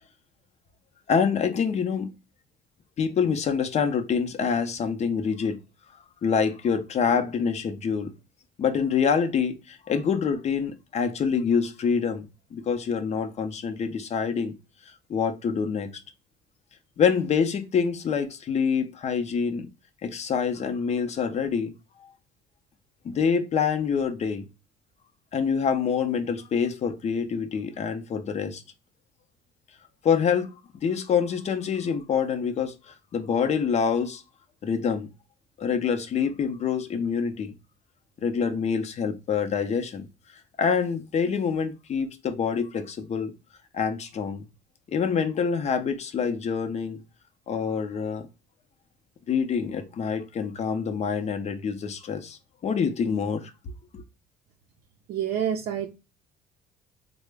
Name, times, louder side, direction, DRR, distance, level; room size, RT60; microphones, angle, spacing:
voice 1, 1.1-2.1 3.0-5.6 6.2-8.1 8.6-14.5 15.1-15.9 17.0-19.7 20.0-21.7 23.0-24.4 25.3-28.6 30.0-30.5 30.8-34.2 34.6-35.1 35.6-37.5 38.2-40.1 40.6-43.3 43.7-44.4 44.9-47.0 47.5-48.3 49.3-53.5 53.9-54.0, left 6 dB, 40° left, 0.6 m, -26 dB
voice 2, 55.1-55.9, right 9 dB, 65° right, 0.5 m, -27 dB
3.6 x 2.1 x 3.3 m
cardioid pair, 110°, 17 cm